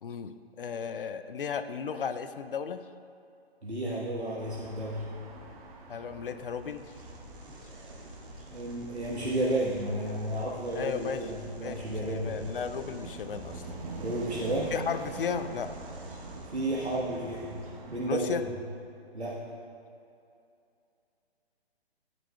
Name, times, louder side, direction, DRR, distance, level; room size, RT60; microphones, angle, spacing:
voice 1, 0.0-2.8 5.9-6.8 10.8-11.2 11.6-13.6 14.7-15.7 18.1-18.4, left 6 dB, 55° left, 10 dB, 0.5 m, -35 dB
voice 2, 3.6-5.1 8.5-12.4 14.0-14.7 16.5-17.5 17.9-18.4 19.1-19.4, right 1 dB, 85° right, -5 dB, 1.3 m, -32 dB
sound 1, 4.4-18.5, right 3 dB, 35° right, 1.0 m, -45 dB
sound 2, 6.4-17.9, right 1 dB, 55° right, 1.8 m, -49 dB
14.5 x 9.3 x 2.3 m, 2.6 s
figure-of-eight pair, 135°, 32 cm